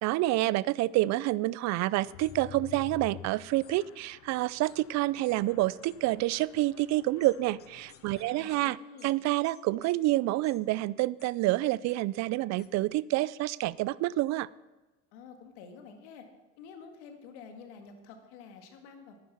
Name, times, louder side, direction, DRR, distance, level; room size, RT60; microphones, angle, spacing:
voice 1, 0.0-8.8 9.0-14.5, right 17 dB, 55° right, 21 dB, 0.4 m, -28 dB
Mechanisms, 2.0-8.7, left 13 dB, 60° left, 0.7 m, -50 dB
sound 1, 2.2-2.3 3.6-3.8 4.6-4.8 5.2-5.4 5.8-6.0 6.3-6.4 6.8-6.9 7.2-8.6 9.0-9.1 9.4-9.9 10.4-10.6 11.2-11.3 11.9-12.0 12.6-12.7, left 7 dB, 30° left, 1.1 m, -57 dB
voice 2, 8.2-9.2 15.1-16.3 16.6-19.2, left 5 dB, 90° left, 5 dB, 1.9 m, -49 dB
10.0 x 9.8 x 5.8 m, 1.1 s
supercardioid pair, 105°, 33 cm